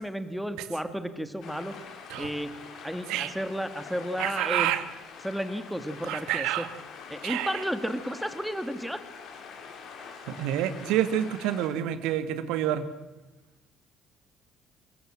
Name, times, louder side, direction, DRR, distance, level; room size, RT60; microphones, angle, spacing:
voice 1, 0.0-1.7 2.2-2.5 2.8-4.7 5.2-6.7 7.1-9.0, equal, ahead, 9 dB, 2.5 m, -32 dB
sound 1, 1.4-11.7, left 5 dB, 60° left, 4.7 m, -45 dB
voice 2, 4.2-4.8 6.0-6.7 7.2-7.6 10.3-12.9, right 11 dB, 65° right, 11 dB, 2.1 m, -28 dB
28.0 x 23.0 x 7.6 m, 1.0 s
figure-of-eight pair, 50°, 0 cm